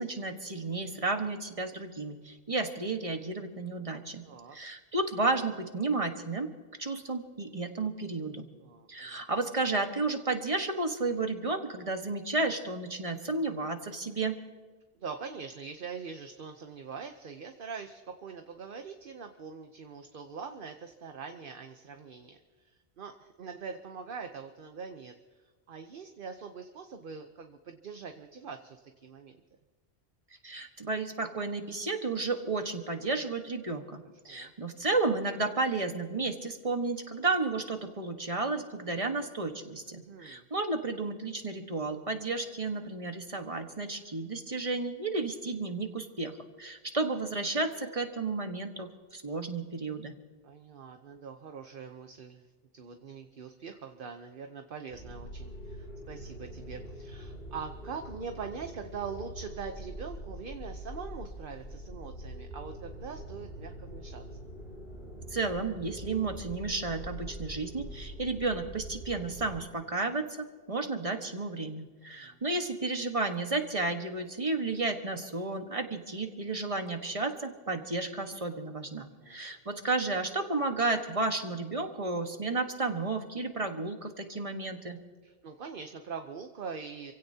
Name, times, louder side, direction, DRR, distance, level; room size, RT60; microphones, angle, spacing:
voice 1, 0.0-4.2 4.5-6.5 6.8-8.5 8.9-14.4 30.4-50.2 65.3-85.0, right 3 dB, 30° right, 5 dB, 1.5 m, -32 dB
voice 2, 4.2-4.6 8.6-9.2 15.0-22.4 22.6-29.4 34.0-34.5 39.9-40.5 50.4-52.5 52.7-64.5 72.1-72.4 79.1-79.4 85.2-87.1, right 5 dB, 55° right, 6 dB, 1.0 m, -43 dB
sound 1, 54.9-69.6, equal, 65° left, 3.8 m, -44 dB
28.0 x 16.5 x 2.8 m, 1.4 s
omnidirectional pair, 1.1 m